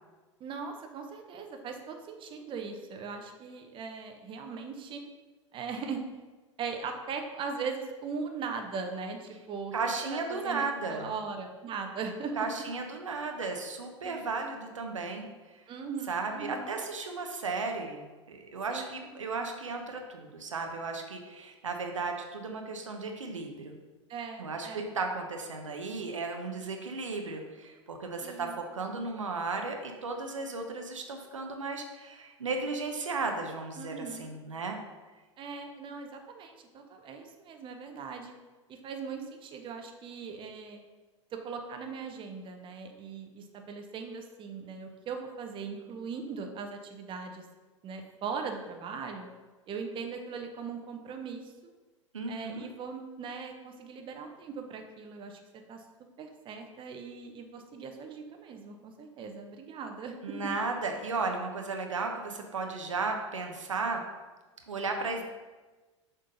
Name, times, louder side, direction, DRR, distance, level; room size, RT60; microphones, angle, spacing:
voice 1, 0.4-5.0 5.5-6.0 6.6-9.7 10.0-12.4 14.0-14.2 15.7-16.7 18.7-19.6 24.1-24.9 28.2-28.6 33.8-34.3 35.4-38.3 38.7-40.8 41.3-47.5 47.8-49.3 49.7-51.5 52.3-55.4 55.7-55.8 56.2-60.5, right 5 dB, 30° right, 4 dB, 0.9 m, -39 dB
voice 2, 9.7-11.1 12.4-15.6 16.1-23.8 24.4-34.8 52.1-52.7 60.2-64.0 64.7-65.2, right 3 dB, 80° right, 3 dB, 0.8 m, -35 dB
6.6 x 3.8 x 5.2 m, 1.3 s
figure-of-eight pair, 85°, 16 cm